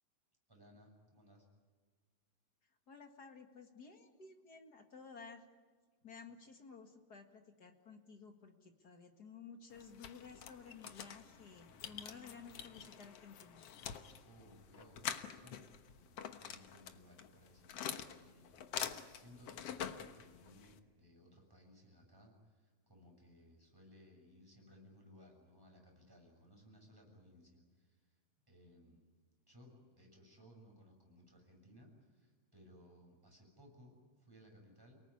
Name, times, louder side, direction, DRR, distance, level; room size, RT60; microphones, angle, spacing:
voice 1, 0.5-1.5 14.2-15.1 15.4-28.2 28.5-29.1 29.5-35.0, equal, 5° right, 0 dB, 6.5 m, -62 dB
voice 2, 2.9-5.4 6.0-13.6, left 5 dB, 40° left, 5 dB, 1.5 m, -54 dB
sound 1, 9.7-20.8, left 9 dB, 65° left, 1.5 m, -46 dB
29.5 x 19.0 x 9.8 m, 1.4 s
omnidirectional pair, 4.3 m